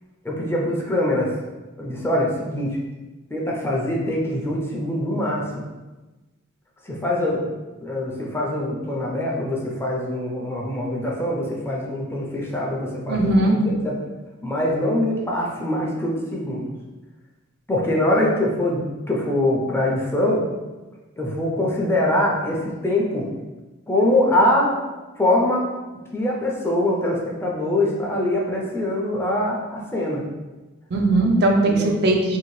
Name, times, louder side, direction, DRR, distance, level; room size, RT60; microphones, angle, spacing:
voice 1, 0.2-1.3 1.8-2.8 3.3-5.6 6.8-7.5 7.8-13.9 14.4-16.7 17.7-20.4 21.2-23.3 23.9-24.8 25.2-25.6 26.1-30.2 31.6-31.9, left 1 dB, 10° left, -3 dB, 0.4 m, -23 dB
voice 2, 13.1-13.6 30.9-32.4, right 2 dB, 50° right, 1 dB, 0.4 m, -19 dB
2.7 x 2.5 x 3.0 m, 1.2 s
head